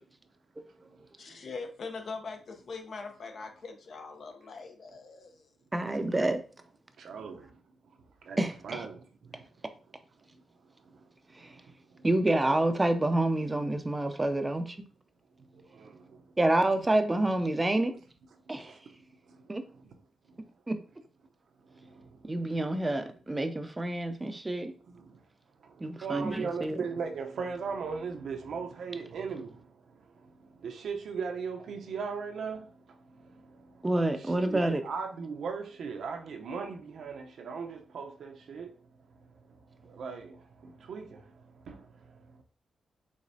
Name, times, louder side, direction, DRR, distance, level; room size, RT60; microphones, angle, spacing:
voice 1, 1.2-5.5, left 4 dB, 60° left, 0.9 m, -42 dB
voice 2, 5.7-6.4 8.4-8.8 11.4-11.5 12.0-14.9 16.4-17.9 18.5-18.7 19.5-19.6 20.7-20.8 22.2-24.7 25.8-26.8 33.8-34.8, right 1 dB, 20° right, 0.5 m, -28 dB
voice 3, 7.0-7.6 8.2-9.5 10.6-12.1 15.4-16.4 18.6-19.9 20.3-20.5 21.6-22.3 22.7-23.0 24.9-25.3 25.6-33.9 34.2-42.4, right 5 dB, 75° right, 0.7 m, -40 dB
5.0 x 3.5 x 2.7 m
cardioid pair, 95°, 0 cm